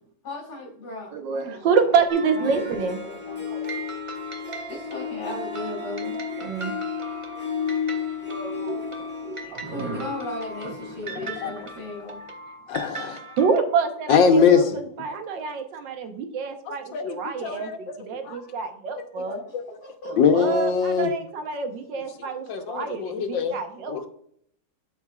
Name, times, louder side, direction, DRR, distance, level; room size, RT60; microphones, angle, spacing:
voice 1, 0.2-2.0 2.4-2.8 3.0-3.4 4.7-6.2 9.4-12.2 19.8-20.1, left 2 dB, 60° left, -4 dB, 2.5 m, -36 dB
voice 2, 1.1-3.0 3.5-3.6 6.4-6.8 8.3-10.1 11.1-11.2 13.4-19.4 20.1-24.1, right 5 dB, 80° right, 6 dB, 1.6 m, -27 dB
Harp, 2.1-2.2 2.4-11.9, left 6 dB, 5° left, 1.0 m, -33 dB
sound 1, 2.1-3.0 3.6-13.6, right 3 dB, 50° right, 0.3 m, -40 dB
voice 3, 12.7-13.2 14.1-14.8 16.9-17.8 18.2-18.4 19.2-19.4 20.2-21.1 22.5-23.6 23.9-24.0, left 6 dB, 85° left, 6 dB, 1.6 m, -21 dB
12.0 x 4.4 x 2.4 m, 0.66 s
omnidirectional pair, 2.0 m